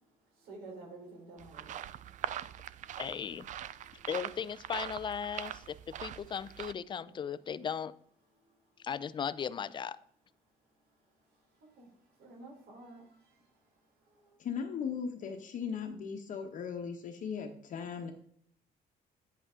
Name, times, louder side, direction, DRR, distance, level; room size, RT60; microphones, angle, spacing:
voice 1, 0.3-3.0 3.6-4.1 8.4-8.9 11.0-14.4, right 2 dB, 75° right, 3.6 m, -54 dB
sound 1, 1.4-6.7, right 11 dB, 50° right, 0.4 m, -42 dB
voice 2, 3.0-3.5 4.1-7.9 8.8-10.0, left 7 dB, 30° left, 0.4 m, -37 dB
voice 3, 14.4-18.1, left 6 dB, 50° left, 1.0 m, -38 dB
9.9 x 8.0 x 3.7 m
cardioid pair, 155°, 17 cm